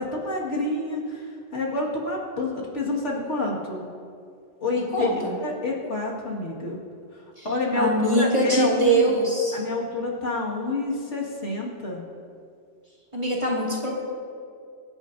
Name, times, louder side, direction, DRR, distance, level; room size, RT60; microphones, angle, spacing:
voice 1, 0.0-3.8 4.6-6.8 7.4-9.1 9.5-12.0, left 2 dB, 70° left, -3 dB, 2.2 m, -28 dB
voice 2, 4.9-5.3 7.4-7.5 7.7-9.6 13.1-14.0, right 1 dB, 25° right, -4 dB, 2.1 m, -22 dB
23.5 x 9.8 x 2.7 m, 2.3 s
omnidirectional pair, 1.3 m